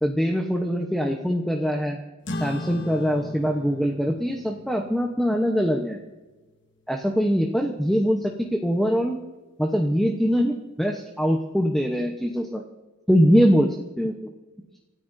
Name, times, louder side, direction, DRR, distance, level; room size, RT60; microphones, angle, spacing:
voice 1, 0.0-2.0 2.3-6.0 6.9-9.2 9.6-12.6 13.1-14.3, equal, ahead, 1 dB, 0.9 m, -23 dB
sound 1, 2.3-7.1, left 2 dB, 60° left, 1.4 m, -38 dB
28.5 x 13.5 x 2.7 m, 1.2 s
head